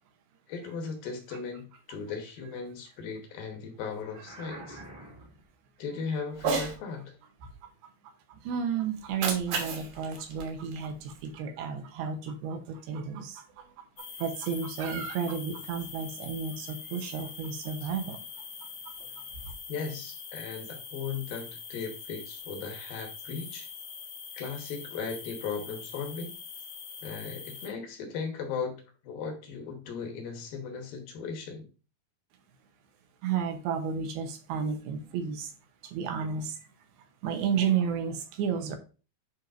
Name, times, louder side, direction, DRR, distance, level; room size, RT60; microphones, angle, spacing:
voice 1, 0.5-4.8 5.8-7.2 19.7-23.7 24.3-26.3 27.0-31.7, left 5 dB, 70° left, 3 dB, 2.7 m, -37 dB
sound 1, 3.9-5.5, right 1 dB, 30° right, 0.5 m, -47 dB
voice 2, 4.5-4.8 7.6-7.7 8.3-18.2 19.0-19.1 33.2-35.5 35.8-36.6 37.2-38.8, right 7 dB, 80° right, 6 dB, 2.7 m, -32 dB
Cat, 6.3-6.8 9.0-11.3, right 5 dB, 60° right, 2.6 m, -33 dB
sound 2, 14.0-27.7, left 6 dB, 85° left, 3.9 m, -43 dB
10.5 x 4.5 x 2.6 m, 0.34 s
omnidirectional pair, 4.6 m